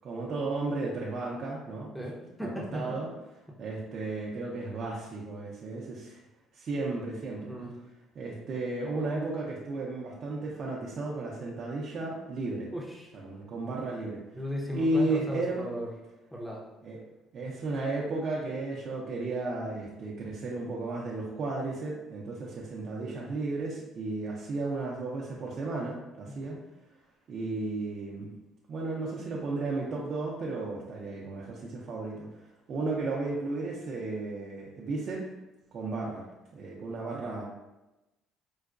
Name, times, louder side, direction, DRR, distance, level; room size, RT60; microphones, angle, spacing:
voice 1, 0.0-1.9 2.4-3.1 3.6-6.2 6.5-7.5 8.1-12.7 13.1-14.2 14.7-15.6 16.8-17.0 17.3-26.5 27.3-28.3 28.7-32.3 32.7-35.2 35.7-36.3 36.5-37.4, right 2 dB, 50° right, -4 dB, 0.5 m, -34 dB
voice 2, 1.9-3.0 3.5-3.6 7.5-7.7 12.7-13.1 14.3-15.9 16.3-16.6 26.3-26.6, equal, 5° left, -2 dB, 0.7 m, -36 dB
4.6 x 2.1 x 2.4 m, 0.99 s
cardioid pair, 100°, 0 cm